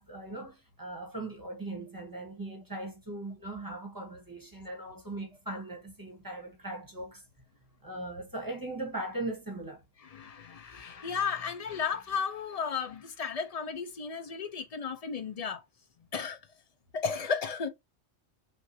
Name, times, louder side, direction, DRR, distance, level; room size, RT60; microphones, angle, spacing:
voice 1, 0.0-7.2 7.8-9.8, right 2 dB, 15° right, 1.1 m, -39 dB
voice 2, 10.0-15.6 16.1-16.4 16.9-17.7, left 6 dB, 55° left, 0.4 m, -34 dB
5.9 x 2.5 x 2.6 m
omnidirectional pair, 1.3 m